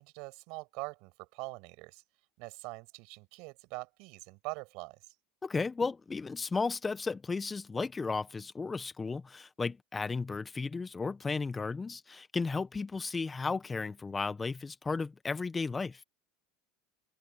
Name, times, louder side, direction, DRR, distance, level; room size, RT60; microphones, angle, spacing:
voice 1, 0.0-2.0 2.4-5.0, right 28 dB, 65° right, 6.5 m, -43 dB
voice 2, 5.4-16.0, left 4 dB, 20° left, 1.4 m, -34 dB
open air
hypercardioid pair, 85°, 0 cm